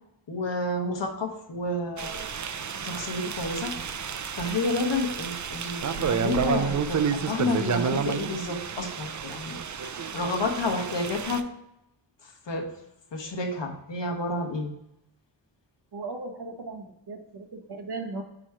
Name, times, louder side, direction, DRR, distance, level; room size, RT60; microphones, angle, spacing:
voice 1, 0.3-2.3 2.8-3.7 4.3-11.4 12.5-12.7 13.1-14.7, left 2 dB, 70° left, 2 dB, 1.3 m, -30 dB
sound 1, 2.0-11.4, right 6 dB, 45° right, 0.5 m, -30 dB
voice 2, 15.9-18.2, right 3 dB, 60° right, 3 dB, 1.1 m, -37 dB
8.5 x 3.1 x 4.7 m, 0.83 s
wide cardioid pair, 105°, 45 cm